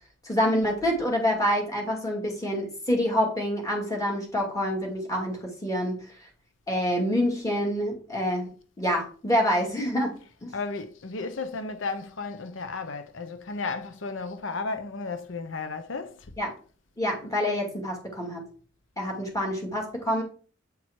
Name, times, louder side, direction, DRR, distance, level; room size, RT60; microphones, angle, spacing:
voice 1, 0.2-6.3 6.7-8.5 8.8-10.1 10.4-10.5 16.4-16.5 17.0-18.4 19.0-20.2, equal, 15° left, 2.4 m, -27 dB
voice 2, 10.2-16.1, left 4 dB, 85° left, 0.8 m, -34 dB
8.3 x 4.7 x 4.4 m
head